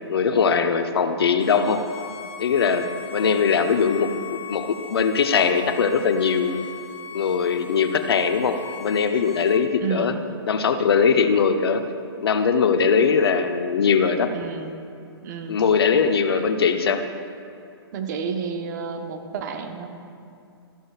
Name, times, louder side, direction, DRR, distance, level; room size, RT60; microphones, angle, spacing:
voice 1, 0.1-1.8 2.4-4.1 4.5-6.6 7.1-10.2 10.4-11.8 12.2-14.3 15.5-17.0, left 6 dB, 65° left, 8 dB, 0.7 m, -21 dB
Bowed string instrument, 1.4-9.6, left 7 dB, 25° left, 0.9 m, -40 dB
voice 2, 9.8-10.1 14.3-14.7 15.2-15.6 16.3-16.5 17.9-19.9, right 6 dB, 45° right, 5 dB, 1.0 m, -30 dB
14.0 x 11.0 x 2.4 m, 2.5 s
hypercardioid pair, 125°, 14 cm